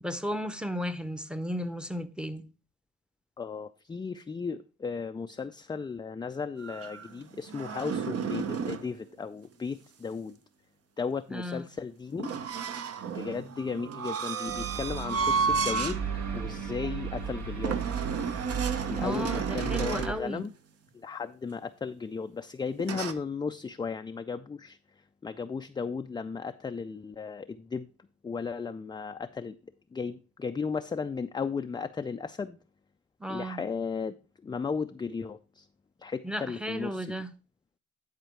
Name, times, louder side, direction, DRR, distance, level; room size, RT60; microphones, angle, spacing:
voice 1, 0.0-2.4 11.3-11.7 19.0-20.4 33.2-33.6 36.2-37.3, equal, 5° right, 0.7 m, -34 dB
voice 2, 3.4-10.4 11.0-12.3 13.1-16.0 16.3-18.0 18.9-20.5 20.9-24.8 25.2-27.9 28.2-29.6 29.9-32.6 33.3-34.2 34.4-35.7 36.0-37.1, left 5 dB, 15° left, 0.3 m, -35 dB
sound 1, 6.6-8.9 12.2-16.0 16.5-16.7 17.6-20.2 22.8-23.1, right 5 dB, 50° right, 0.8 m, -32 dB
sound 2, 14.5-20.1, right 7 dB, 65° right, 1.7 m, -35 dB
10.5 x 4.4 x 4.5 m
cardioid pair, 90°, 30 cm